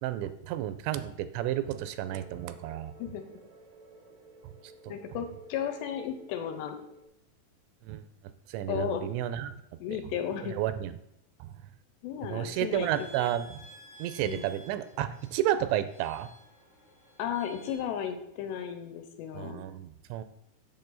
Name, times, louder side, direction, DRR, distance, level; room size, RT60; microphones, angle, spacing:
voice 1, 0.0-2.9 7.8-8.0 8.5-9.5 10.5-10.9 11.4-11.5 12.2-13.6 14.0-16.3 19.3-20.2, right 12 dB, 85° right, 12 dB, 2.9 m, -31 dB
sound 1, 1.6-7.1, right 2 dB, 70° right, 1.9 m, -53 dB
voice 2, 4.9-6.8 8.7-9.0 9.8-10.6 12.0-13.1 14.2-14.5 17.2-19.7, left 9 dB, 80° left, 7 dB, 2.9 m, -34 dB
sound 2, 12.7-17.8, equal, 30° left, 2.4 m, -53 dB
7.8 x 7.3 x 3.9 m, 0.80 s
omnidirectional pair, 5.1 m